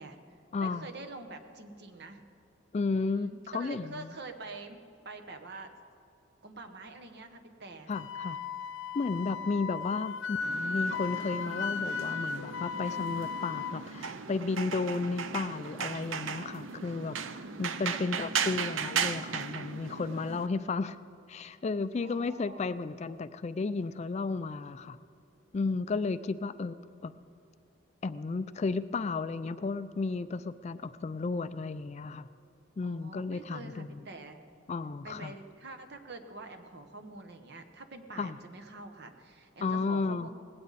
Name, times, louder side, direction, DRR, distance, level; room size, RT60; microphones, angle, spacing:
voice 1, 0.0-2.2 2.9-4.8 5.0-5.7 6.4-7.9 9.5-9.8 17.4-18.1 22.0-22.7 26.2-26.3 32.8-34.4 35.0-40.3, right 2 dB, 55° right, 6 dB, 1.1 m, -46 dB
voice 2, 0.5-0.9 2.7-4.1 7.9-8.4 8.9-21.0 21.3-25.0 25.5-26.8 27.0-27.1 28.0-32.3 32.8-34.1 34.7-35.3 38.2-38.4 39.6-40.3, left 4 dB, 35° left, 13 dB, 0.3 m, -33 dB
Wind instrument woodwind instrument, 7.9-13.7, left 5 dB, 85° left, 0.8 m, -36 dB
sound 1, 10.4-20.5, right 6 dB, 70° right, 0.6 m, -36 dB
19.5 x 16.5 x 4.1 m, 2.5 s
head